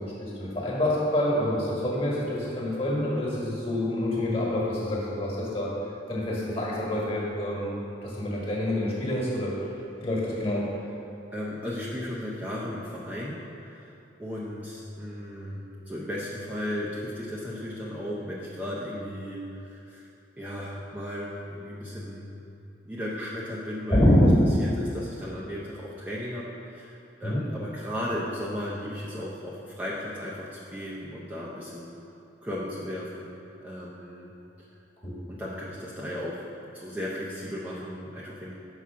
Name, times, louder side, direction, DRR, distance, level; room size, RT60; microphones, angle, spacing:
voice 1, 0.0-5.7 6.1-9.7 10.0-10.7 23.9-24.4 27.2-27.5 35.0-35.2, left 1 dB, 30° left, -4 dB, 1.5 m, -26 dB
voice 2, 11.3-13.9 14.2-20.1 20.4-22.3 22.8-24.3 24.6-31.9 32.4-34.3 35.3-38.5, left 1 dB, 10° right, -7 dB, 0.6 m, -35 dB
5.8 x 4.8 x 6.1 m, 2.7 s
head